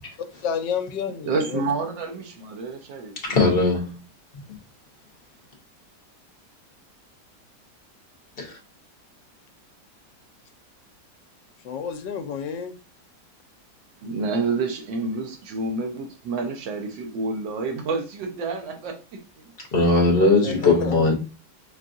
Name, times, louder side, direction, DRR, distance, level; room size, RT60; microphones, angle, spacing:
voice 1, 0.4-1.6 11.6-12.8 20.4-20.9, left 7 dB, 90° left, 1.3 m, -30 dB
voice 2, 1.2-3.4 14.0-19.5 20.0-20.9, right 3 dB, 85° right, 1.5 m, -29 dB
voice 3, 3.2-4.0 8.4-8.6 19.7-21.1, left 3 dB, 40° left, 1.1 m, -19 dB
5.7 x 2.4 x 2.5 m
omnidirectional pair, 1.9 m